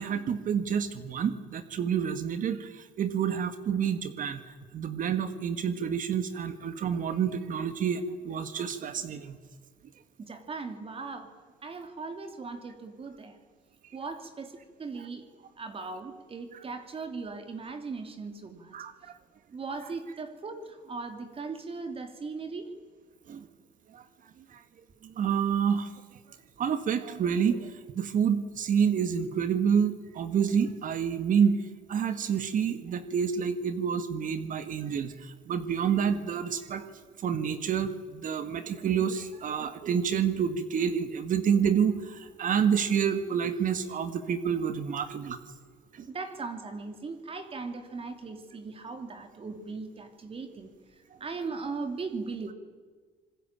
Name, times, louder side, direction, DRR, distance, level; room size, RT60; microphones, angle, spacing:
voice 1, 0.0-4.4 4.7-9.4 18.7-18.9 23.3-23.4 23.9-24.0 25.0-25.9 26.6-31.6 31.9-36.8 37.2-45.4 46.0-46.1, right 7 dB, 50° right, 10 dB, 1.8 m, -28 dB
voice 2, 10.2-11.3 11.6-13.4 13.9-15.3 15.6-18.7 19.5-22.7 46.1-50.7 51.2-52.5, right 4 dB, 35° right, 7 dB, 2.9 m, -38 dB
26.0 x 21.0 x 9.0 m, 1.5 s
cardioid pair, 110°, 17 cm